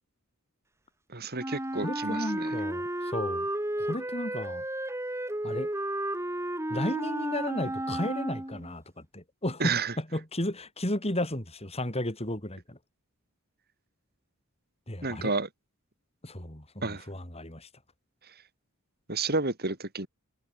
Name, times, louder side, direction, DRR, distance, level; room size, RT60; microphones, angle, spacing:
voice 1, 1.1-2.5 9.6-9.9 15.0-15.5 16.8-17.1 19.1-20.1, right 3 dB, 45° right, 4.9 m, -31 dB
Wind instrument woodwind instrument, 1.4-8.7, right 1 dB, 10° right, 2.5 m, -33 dB
voice 2, 1.8-3.5 3.8-4.6 5.4-5.7 6.7-12.8 14.9-15.3 16.2-17.7, left 1 dB, 30° left, 6.7 m, -34 dB
head